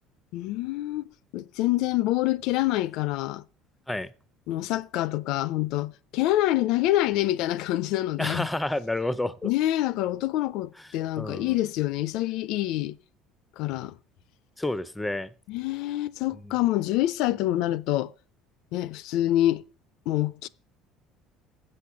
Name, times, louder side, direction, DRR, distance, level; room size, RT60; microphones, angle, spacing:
voice 1, 0.3-1.0 1.3-3.4 4.5-8.5 9.4-13.0 13.6-13.9 15.5-18.1 18.7-19.6 20.1-20.5, left 15 dB, 65° left, 0.5 m, -26 dB
voice 2, 8.2-9.5 10.8-10.9 11.2-11.6 14.6-15.3 16.4-16.5, left 2 dB, 5° left, 0.5 m, -30 dB
7.8 x 6.6 x 8.2 m
cardioid pair, 155°, 0 cm